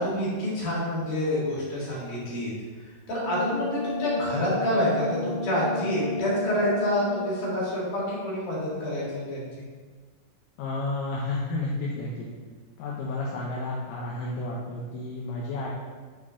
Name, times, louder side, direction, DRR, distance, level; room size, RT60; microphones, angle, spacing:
voice 1, 0.0-2.5 3.1-9.7, left 1 dB, 65° left, -7 dB, 3.4 m, -27 dB
Brass instrument, 3.1-7.4, left 2 dB, 80° right, 3.5 m, -33 dB
voice 2, 10.6-12.3 12.8-15.7, left 2 dB, 80° left, -4 dB, 2.4 m, -31 dB
7.7 x 4.3 x 3.6 m, 1.5 s
omnidirectional pair, 4.1 m